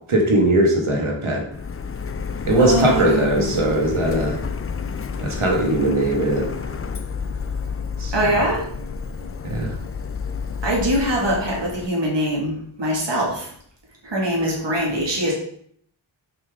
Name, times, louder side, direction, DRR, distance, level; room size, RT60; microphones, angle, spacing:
voice 1, 0.1-1.4 2.4-4.4 5.2-6.5 8.0-8.1 9.4-9.7, right 1 dB, 80° right, 0 dB, 1.7 m, -19 dB
Printer, 1.5-11.9, left 5 dB, 30° left, 0.4 m, -30 dB
voice 2, 2.6-3.5 8.1-8.6 10.6-13.5 14.0-15.3, equal, 60° right, -3 dB, 1.9 m, -23 dB
5.7 x 5.6 x 3.6 m, 0.63 s
wide cardioid pair, 50°, 48 cm